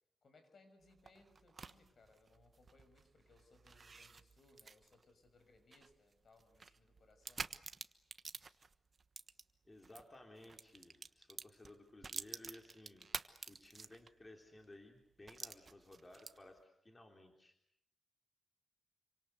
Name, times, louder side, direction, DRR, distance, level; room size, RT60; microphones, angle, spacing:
voice 1, 0.2-7.5, left 3 dB, 55° left, 8 dB, 6.1 m, -67 dB
sound 1, 0.8-10.0 10.4-14.3 14.6-14.7 15.3-16.6, right 4 dB, 40° right, 1.2 m, -50 dB
voice 2, 9.7-13.1 13.5-17.5, left 1 dB, 20° left, 3 dB, 3.7 m, -58 dB
27.5 x 25.0 x 8.1 m, 0.72 s
wide cardioid pair, 110°, 0 cm